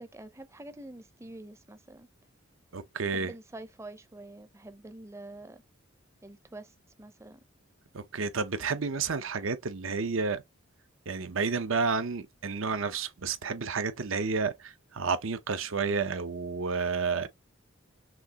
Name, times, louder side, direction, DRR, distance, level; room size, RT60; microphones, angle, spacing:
voice 1, 0.0-2.1 3.1-5.6 6.2-6.7 7.0-7.4, right 2 dB, 15° right, 0.6 m, -46 dB
voice 2, 2.7-3.3 7.9-10.4 11.1-17.3, right 4 dB, 70° right, 0.8 m, -31 dB
6.0 x 2.8 x 2.9 m
head